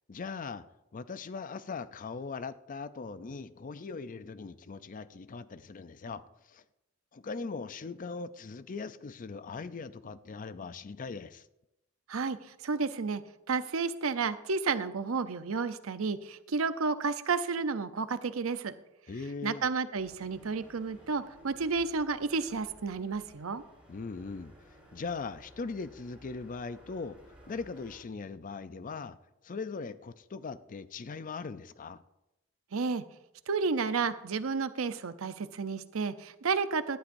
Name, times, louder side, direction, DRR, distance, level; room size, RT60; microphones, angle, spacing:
voice 1, 0.1-0.6 0.9-6.6 7.1-11.5 19.1-19.6 23.9-24.5 24.9-27.2 27.5-29.2 29.4-32.0, left 4 dB, 40° left, 0.5 m, -40 dB
voice 2, 12.1-13.2 13.5-18.7 19.4-23.6 32.7-33.0 33.5-37.0, right 4 dB, 85° right, 0.7 m, -31 dB
sound 1, 20.0-28.0, equal, 5° right, 5.2 m, -56 dB
18.0 x 12.0 x 2.6 m
head